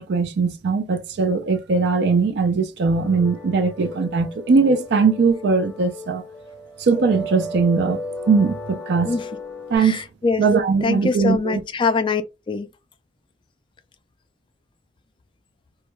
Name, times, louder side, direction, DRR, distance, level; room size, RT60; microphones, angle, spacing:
voice 1, 0.0-6.2 6.8-8.0 8.3-9.1 9.7-10.0 10.4-11.6, right 4 dB, 60° right, 0.4 m, -20 dB
sound 1, 2.9-9.8, left 1 dB, 10° left, 0.7 m, -35 dB
voice 2, 9.8-10.4 10.8-12.2 12.5-12.7, left 4 dB, 25° left, 0.3 m, -23 dB
2.3 x 2.2 x 2.9 m
head